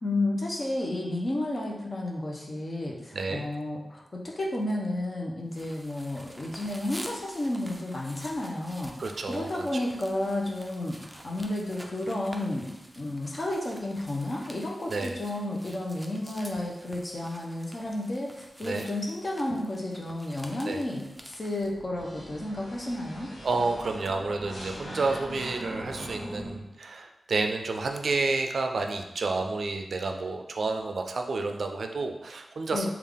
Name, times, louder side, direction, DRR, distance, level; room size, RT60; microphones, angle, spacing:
voice 1, 0.0-9.0 9.3-11.0 11.2-12.7 13.0-23.3 32.7-32.9, left 1 dB, 45° left, -2 dB, 0.7 m, -32 dB
voice 2, 3.1-3.5 9.0-9.7 14.9-15.1 18.6-18.9 20.7-20.8 23.4-32.9, right 3 dB, 75° right, 4 dB, 0.3 m, -30 dB
sound 1, 5.5-21.7, equal, 5° right, 0.4 m, -48 dB
sound 2, 21.6-26.5, equal, 25° left, 1.5 m, -42 dB
sound 3, 21.9-26.5, left 1 dB, 90° left, 0.6 m, -47 dB
3.4 x 2.4 x 3.5 m, 0.90 s
wide cardioid pair, 70°, 0 cm